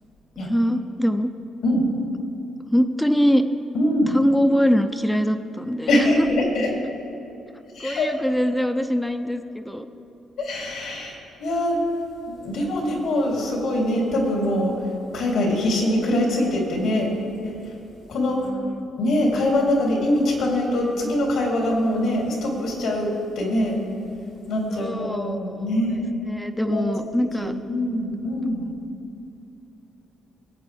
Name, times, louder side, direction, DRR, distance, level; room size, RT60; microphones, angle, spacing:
voice 1, 0.4-1.3 2.7-3.5 4.1-6.3 7.8-9.9 18.4-18.9 24.7-25.8 26.3-27.5, equal, 5° left, 7 dB, 0.6 m, -23 dB
voice 2, 3.7-4.1 5.9-6.7 7.7-8.1 10.4-11.1 11.4-11.8 12.3-14.7 15.1-17.1 18.1-18.4 19.0-23.1 23.3-23.8 24.5-26.0 26.7-26.9 27.4-28.6, left 1 dB, 80° left, -2 dB, 3.2 m, -23 dB
19.5 x 8.1 x 3.5 m, 2.9 s
cardioid pair, 90°, 0 cm